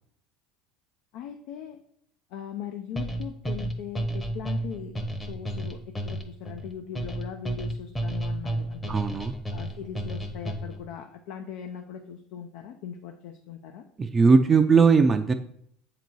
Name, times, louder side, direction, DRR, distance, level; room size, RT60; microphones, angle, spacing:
voice 1, 1.1-1.8 2.3-4.9 5.3-9.0 9.5-13.8, left 8 dB, 70° left, 5 dB, 0.7 m, -39 dB
sound 1, 3.0-10.9, right 1 dB, 15° left, 0.9 m, -32 dB
voice 2, 8.9-9.3 14.0-15.3, right 5 dB, 25° right, 6 dB, 0.5 m, -19 dB
7.4 x 4.0 x 4.6 m, 0.68 s
supercardioid pair, 100°, 0 cm